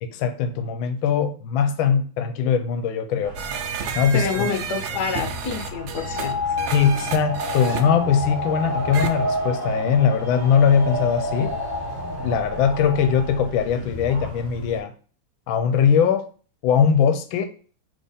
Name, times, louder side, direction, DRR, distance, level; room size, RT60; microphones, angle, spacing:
voice 1, 0.1-3.4 3.9-4.5 6.7-11.5 12.2-14.9 15.5-16.3 16.6-17.5, left 7 dB, 85° left, 8 dB, 1.4 m, -21 dB
sound 1, 3.2-14.8, left 1 dB, 45° right, 2.2 m, -38 dB
sound 2, 3.4-7.8 8.9-9.1, right 6 dB, 70° right, 1.0 m, -31 dB
voice 2, 4.1-6.4, left 6 dB, 65° left, 5 dB, 1.1 m, -27 dB
sound 3, 5.9-13.6, left 1 dB, 10° right, 1.3 m, -29 dB
4.2 x 3.4 x 3.5 m, 0.40 s
omnidirectional pair, 2.1 m